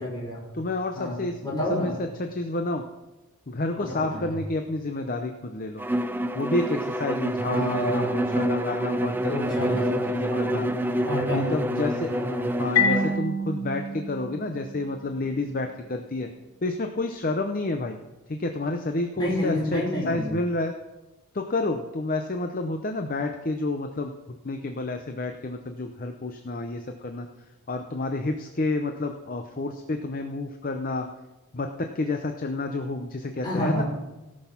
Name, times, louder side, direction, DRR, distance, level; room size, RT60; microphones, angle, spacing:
voice 1, 0.0-0.5 0.9-2.0 3.7-4.4 7.4-8.5 9.3-12.5 19.2-20.3 33.4-33.8, left 1 dB, 20° left, -4 dB, 4.9 m, -30 dB
voice 2, 0.5-1.9 2.2-2.8 3.5-5.8 6.3-9.8 10.1-10.7 11.3-12.1 12.6-16.3 16.6-18.0 18.3-20.7 21.3-24.1 24.4-27.3 27.7-31.1 31.5-33.8, left 2 dB, 40° left, 5 dB, 0.7 m, -29 dB
Bowed string instrument, 5.8-13.2, right 1 dB, 10° right, 0.4 m, -27 dB
Marimba xylophone, 12.8-15.4, left 3 dB, 75° left, 3.9 m, -27 dB
17.0 x 6.4 x 5.8 m, 1.0 s
head